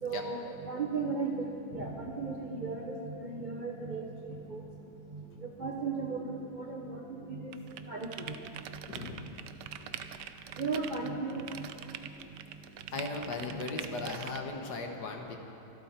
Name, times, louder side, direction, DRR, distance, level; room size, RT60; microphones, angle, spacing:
voice 1, 0.0-4.7 5.1-8.4 8.7-8.8 9.1-9.2 10.6-11.7 12.9-13.1 13.5-14.1, right 4 dB, 40° right, 0 dB, 0.7 m, -37 dB
sound 1, 7.5-14.4, right 10 dB, 70° right, 1.1 m, -43 dB
voice 2, 8.9-9.3 12.9-15.4, left 3 dB, 55° left, 3 dB, 1.6 m, -38 dB
24.5 x 12.5 x 4.4 m, 2.9 s
omnidirectional pair, 2.4 m